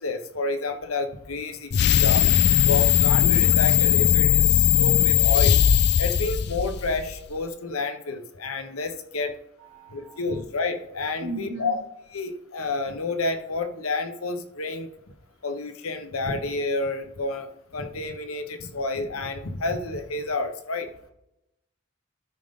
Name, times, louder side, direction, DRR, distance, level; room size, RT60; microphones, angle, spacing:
voice 1, 0.0-2.2 2.6-5.6 6.0-9.3 9.9-11.8 12.1-14.9 15.4-20.9, left 3 dB, 90° left, 7 dB, 1.0 m, -30 dB
sound 1, 1.7-7.1, left 9 dB, 50° left, 0.4 m, -19 dB
voice 2, 9.6-10.2 11.2-11.8, right 2 dB, 75° right, 2 dB, 1.9 m, -36 dB
12.5 x 5.3 x 3.7 m, 0.86 s
head